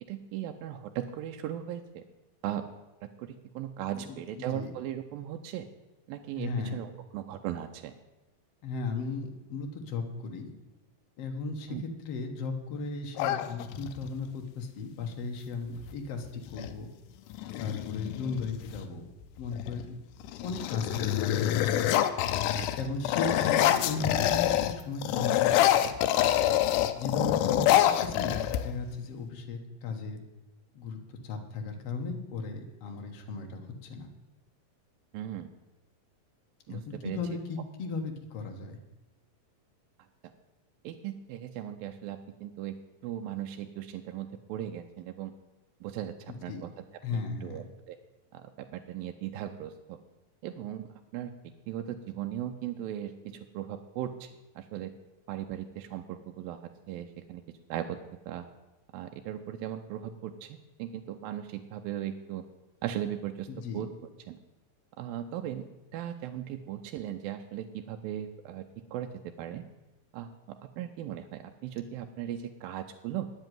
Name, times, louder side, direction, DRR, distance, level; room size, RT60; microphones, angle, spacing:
voice 1, 0.1-2.0 2.4-2.7 3.0-5.7 6.1-7.9 11.7-11.8 22.5-22.7 35.1-35.5 36.7-37.2 40.8-42.8 43.0-45.3 45.8-46.9 47.1-48.0 48.3-50.0 50.4-51.3 51.7-54.9 55.3-57.4 57.7-58.0 58.3-58.5 58.9-62.4 62.8-63.5 63.7-63.9 64.3-64.4 65.0-65.7 65.9-68.7 68.9-69.1 69.4-69.7 70.1-73.3, right 11 dB, 85° right, 5 dB, 2.4 m, -38 dB
voice 2, 3.9-4.7 6.4-6.8 8.6-10.5 11.2-16.9 17.6-19.1 19.4-19.8 20.4-21.6 22.8-25.5 25.8-26.4 26.9-30.2 30.7-34.1 36.7-38.8 46.3-46.6 47.0-47.6 63.5-63.8, left 4 dB, 55° left, 4 dB, 2.0 m, -36 dB
sound 1, 13.2-14.1 15.8-15.9 16.2-16.7 17.3-18.8 19.4-19.8 20.2-24.8 25.0-29.0, left 12 dB, 75° left, 2.0 m, -26 dB
9.9 x 8.1 x 9.2 m, 1.0 s
omnidirectional pair, 4.2 m